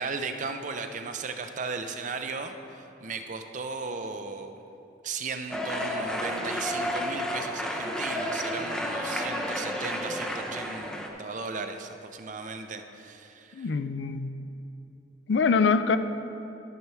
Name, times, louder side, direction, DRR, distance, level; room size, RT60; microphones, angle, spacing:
voice 1, 0.0-4.5 5.0-13.7, right 4 dB, 40° right, 7 dB, 0.5 m, -36 dB
sound 1, 5.5-11.1, equal, 5° left, 0.6 m, -31 dB
voice 2, 13.5-14.3 15.3-16.0, left 5 dB, 65° left, 11 dB, 0.4 m, -24 dB
12.5 x 4.6 x 5.6 m, 2.8 s
head